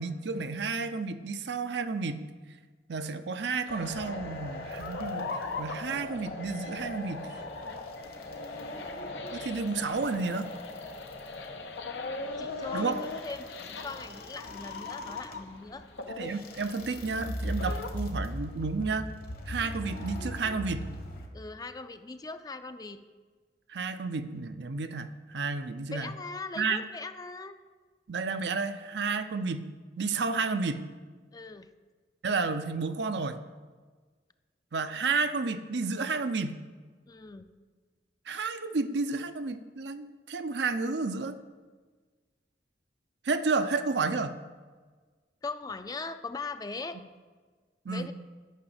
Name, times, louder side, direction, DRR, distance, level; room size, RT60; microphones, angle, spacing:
voice 1, 0.0-2.2 2.9-5.3 5.6-7.3 9.3-10.5 12.7-13.0 16.2-19.1 19.5-20.9 23.7-26.1 26.6-26.8 28.1-29.7 30.0-30.8 32.2-33.4 34.7-36.6 38.3-41.4 43.2-44.4 47.9-48.1, right 4 dB, 75° right, 10 dB, 0.6 m, -31 dB
sound 1, 3.7-15.6 16.0-17.9, left 3 dB, 90° left, 0.9 m, -41 dB
sound 2, 3.7-21.3, left 1 dB, 55° left, 1.3 m, -40 dB
voice 2, 12.4-15.8 21.3-23.0 25.9-27.6 31.3-31.7 37.1-37.5 45.4-47.0 47.9-48.1, left 3 dB, 20° left, 10 dB, 0.4 m, -40 dB
10.0 x 5.7 x 7.9 m, 1.4 s
head